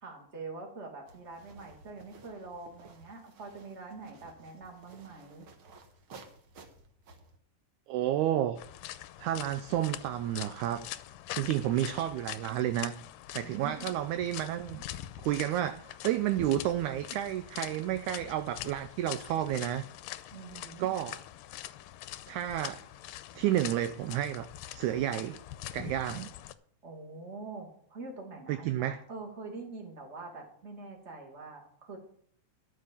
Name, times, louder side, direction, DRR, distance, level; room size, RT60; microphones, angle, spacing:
voice 1, 0.0-5.5 13.4-13.9 20.3-20.9 26.8-32.0, right 3 dB, 25° right, 1 dB, 2.2 m, -45 dB
sound 1, 1.1-7.4, right 3 dB, 55° right, 1.6 m, -55 dB
voice 2, 7.9-8.6 9.2-10.9 11.4-13.0 13.4-19.9 20.8-21.2 22.3-22.8 23.4-25.4 25.7-26.3 28.5-29.0, right 12 dB, 80° right, 11 dB, 1.8 m, -31 dB
sound 2, 8.6-26.5, left 13 dB, 85° left, 2.3 m, -44 dB
13.0 x 5.6 x 7.3 m, 0.64 s
omnidirectional pair, 3.9 m